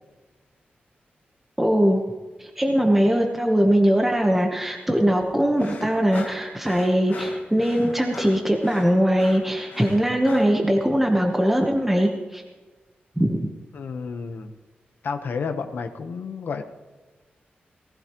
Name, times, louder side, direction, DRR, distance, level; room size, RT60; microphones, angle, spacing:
voice 1, 1.6-2.0 2.4-12.4 13.2-13.5, equal, 5° right, 1 dB, 1.2 m, -21 dB
sound 1, 5.6-10.6, left 3 dB, 55° left, 2.3 m, -40 dB
voice 2, 13.7-14.5 15.0-16.6, left 5 dB, 70° left, 6 dB, 1.1 m, -31 dB
19.0 x 15.5 x 3.1 m, 1.3 s
wide cardioid pair, 165°, 3 cm